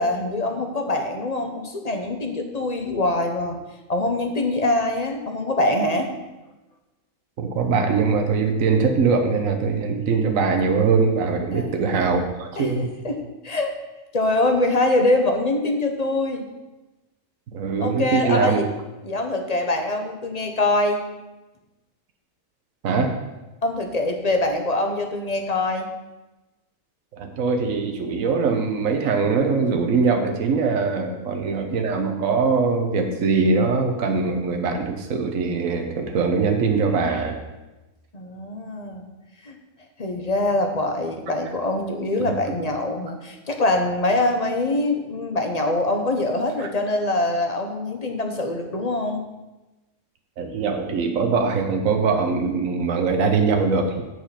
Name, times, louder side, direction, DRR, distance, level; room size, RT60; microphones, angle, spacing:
voice 1, 0.0-3.6 3.9-6.1 11.5-12.0 12.6-12.7 13.0-13.7 14.1-16.5 17.8-18.7 19.0-21.0 23.6-25.9 38.1-39.1 39.4-39.5 40.0-49.2, left 2 dB, 30° left, 4 dB, 1.0 m, -24 dB
voice 2, 7.4-12.9 17.5-18.6 22.8-23.1 27.1-37.4 42.2-42.6 46.6-46.7 50.4-54.0, right 4 dB, 75° right, 4 dB, 1.4 m, -22 dB
7.8 x 6.7 x 5.8 m, 1.1 s
omnidirectional pair, 1.4 m